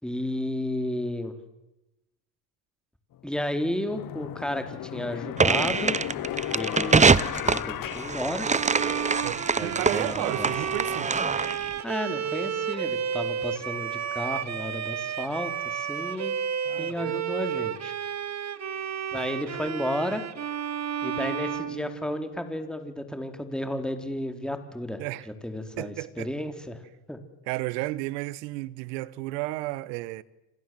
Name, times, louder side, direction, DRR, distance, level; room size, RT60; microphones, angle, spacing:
voice 1, 0.0-1.3 3.2-6.0 6.5-8.5 9.6-10.5 11.8-16.4 16.8-17.9 19.1-20.2 21.0-25.0 25.4-26.8 27.1-27.2, left 1 dB, ahead, 3.9 m, -32 dB
sound 1, 3.1-3.2 3.9-9.1, left 13 dB, 45° left, 1.0 m, -35 dB
sound 2, 5.4-11.7, right 4 dB, 15° right, 0.9 m, -24 dB
Bowed string instrument, 8.4-22.5, right 8 dB, 35° right, 1.9 m, -32 dB
voice 2, 9.2-11.1 16.6-17.2 25.0-25.3 25.8-26.3 27.5-30.2, right 19 dB, 80° right, 1.4 m, -33 dB
28.5 x 26.5 x 7.8 m
supercardioid pair, 90°, 48 cm